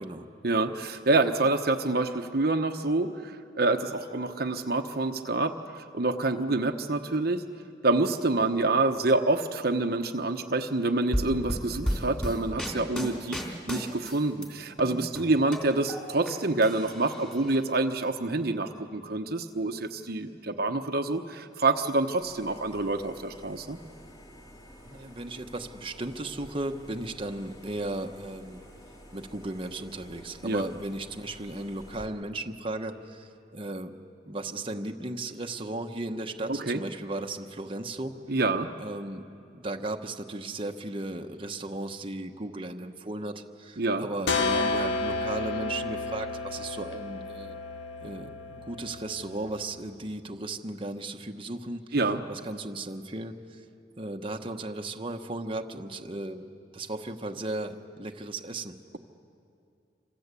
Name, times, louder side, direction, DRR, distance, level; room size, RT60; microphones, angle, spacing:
voice 1, 0.4-7.4 7.8-13.4 13.7-23.8 30.4-30.6 36.5-36.8 38.3-38.7 43.8-44.1 51.9-52.2, right 2 dB, 60° right, 5 dB, 1.1 m, -27 dB
sound 1, 11.1-14.5 14.8-16.3 16.6-17.5, equal, 5° left, 3.5 m, -33 dB
sound 2, 22.2-32.1, equal, 25° left, 2.7 m, -50 dB
voice 2, 24.8-28.6 29.1-33.9 34.3-38.2 38.8-39.2 39.5-47.6 48.0-51.8 52.3-53.6 54.0-56.5 56.7-59.0, right 2 dB, 30° right, 3 dB, 1.1 m, -36 dB
sound 3, 44.3-49.7, left 3 dB, 90° left, 1.7 m, -31 dB
27.5 x 26.5 x 8.3 m, 2.5 s
head